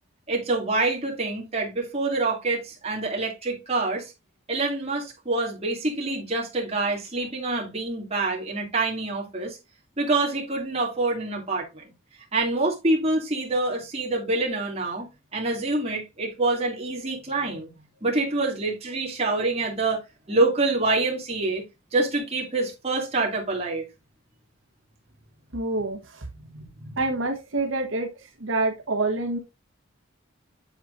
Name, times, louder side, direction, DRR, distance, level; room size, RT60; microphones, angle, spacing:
voice 1, 0.3-4.1 4.5-9.6 10.0-11.9 12.3-17.7 18.0-20.0 20.3-21.6 21.9-23.8 26.5-27.0, right 2 dB, 30° right, 2.6 m, -26 dB
voice 2, 25.5-26.2 27.0-28.1 28.4-29.4, right 2 dB, 75° right, 1.3 m, -26 dB
8.0 x 7.5 x 2.6 m
head